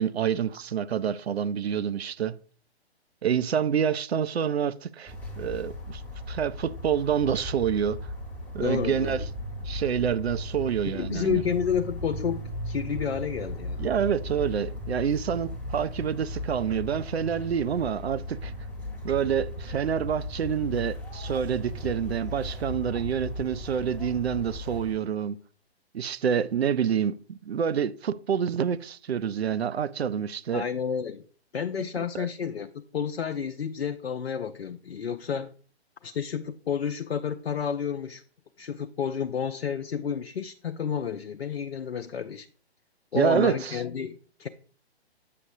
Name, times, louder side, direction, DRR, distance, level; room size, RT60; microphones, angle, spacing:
voice 1, 0.0-2.4 3.2-6.0 6.3-8.0 8.5-9.2 9.6-11.4 13.8-18.5 19.0-25.4 25.9-30.6 31.8-32.3 43.1-43.8, right 8 dB, 70° right, 0.5 m, -27 dB
sound 1, 5.1-24.9, left 1 dB, 5° left, 1.4 m, -37 dB
voice 2, 8.6-9.2 10.9-13.9 30.5-31.2 31.5-35.5 36.0-38.2 38.6-42.5 43.1-44.5, left 7 dB, 70° left, 0.5 m, -30 dB
8.4 x 6.7 x 2.6 m
figure-of-eight pair, 130°, 33 cm